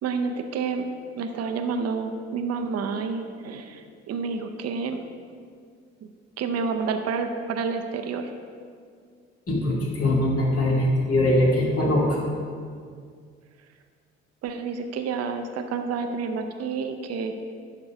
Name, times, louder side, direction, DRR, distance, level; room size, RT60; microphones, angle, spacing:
voice 1, 0.0-0.9 1.2-5.0 6.4-8.3 14.4-17.3, right 5 dB, 45° right, 6 dB, 0.8 m, -29 dB
voice 2, 9.5-12.2, left 1 dB, 40° left, -3 dB, 2.2 m, -22 dB
11.0 x 3.7 x 4.9 m, 2.1 s
figure-of-eight pair, 45°, 34 cm